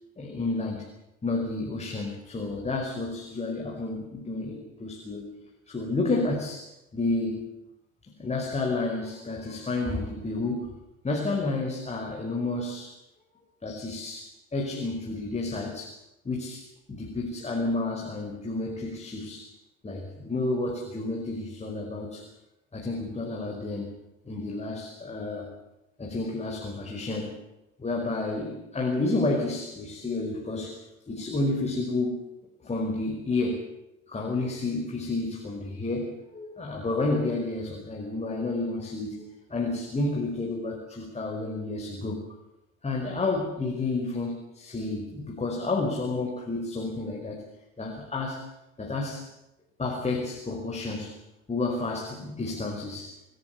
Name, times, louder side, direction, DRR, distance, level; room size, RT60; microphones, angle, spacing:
voice 1, 0.2-0.9 1.2-5.2 5.7-7.5 8.0-10.7 11.0-13.0 13.6-16.0 16.3-19.5 19.8-22.3 22.7-23.9 24.3-25.5 26.0-27.4 27.8-32.2 32.6-33.7 34.1-42.2 42.8-47.4 47.8-48.4 48.8-49.3 49.8-51.2 51.5-53.1, left 2 dB, 15° left, 1 dB, 5.4 m, -30 dB
28.0 x 17.5 x 7.0 m, 0.91 s
figure-of-eight pair, 70°, 41 cm